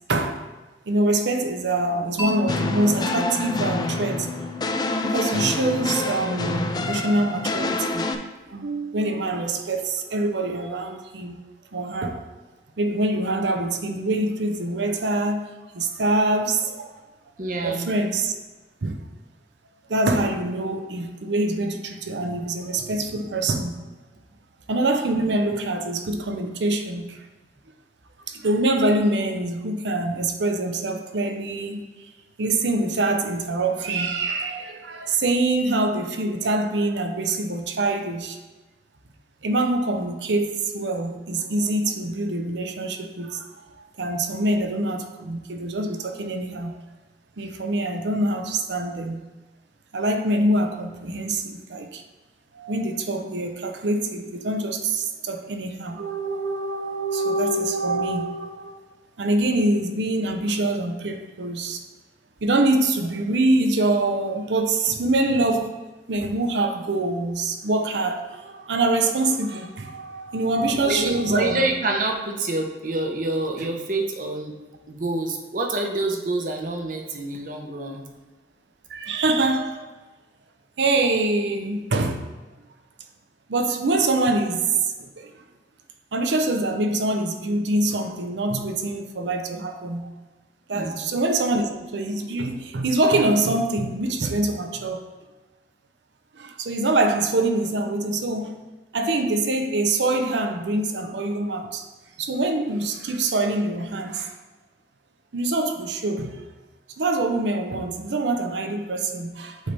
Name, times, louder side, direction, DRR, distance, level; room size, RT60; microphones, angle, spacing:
voice 1, 0.1-0.4 0.9-4.3 5.0-8.0 8.5-11.4 11.7-12.2 12.8-15.5 15.7-16.9 17.6-18.3 18.8-19.0 19.9-23.7 24.7-27.2 28.3-31.9 32.4-38.4 39.4-43.6 44.0-46.7 47.4-49.2 49.9-52.0 52.5-58.7 59.2-61.8 62.4-65.8 66.1-71.7 78.9-79.9 80.8-82.2 83.5-85.3 86.1-90.1 90.7-95.1 96.4-98.6 98.9-101.9 102.2-104.3 105.3-106.4 107.0-109.7, right 2 dB, 85° right, 6 dB, 0.7 m, -24 dB
Mallet percussion, 2.2-6.2, left 4 dB, 10° right, 1.0 m, -34 dB
sound 1, 2.5-8.2, left 2 dB, 25° left, 0.3 m, -27 dB
voice 2, 17.4-17.9 70.8-74.6 74.9-78.1 90.7-91.0, right 2 dB, 45° right, 2 dB, 0.8 m, -27 dB
8.2 x 3.4 x 4.1 m, 1.2 s
head